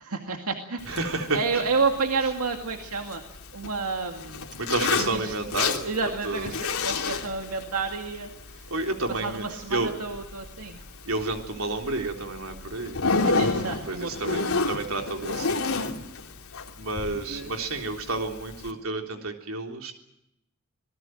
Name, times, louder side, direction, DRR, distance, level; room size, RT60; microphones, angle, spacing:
voice 1, 0.0-0.8 1.3-3.2 3.5-4.5 5.0-5.4 5.8-8.7 9.1-10.8 13.2-14.5 17.1-17.5, right 4 dB, 85° right, 4 dB, 2.2 m, -30 dB
Zipper (clothing), 0.8-18.7, left 4 dB, 80° left, 2.7 m, -32 dB
voice 2, 0.9-1.6 4.6-5.9 6.2-6.5 8.7-9.9 11.1-13.0 13.9-14.4 14.7-15.7 16.8-19.9, right 2 dB, 70° right, 4 dB, 3.6 m, -30 dB
27.0 x 19.0 x 7.8 m, 0.84 s
head